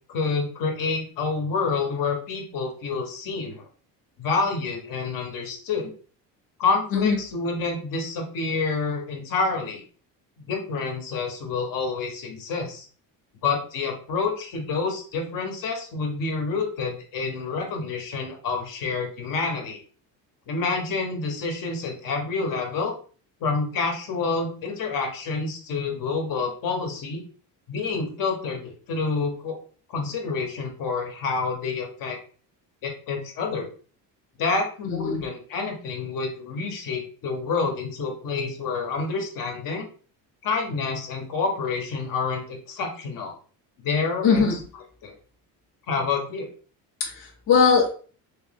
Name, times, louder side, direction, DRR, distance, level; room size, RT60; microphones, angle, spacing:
voice 1, 0.1-3.7 4.2-5.9 6.6-9.8 10.5-12.9 13.4-19.8 20.5-22.9 23.4-27.2 27.7-29.5 29.9-32.2 32.8-33.7 34.4-39.9 40.4-43.3 43.8-44.6 45.0-45.2 45.9-46.5, left 4 dB, 60° left, 2 dB, 1.1 m, -28 dB
voice 2, 34.9-35.2 44.2-44.6 47.1-47.9, left 5 dB, 35° left, 0 dB, 0.7 m, -20 dB
3.2 x 3.1 x 3.4 m, 0.41 s
cardioid pair, 135°, 38 cm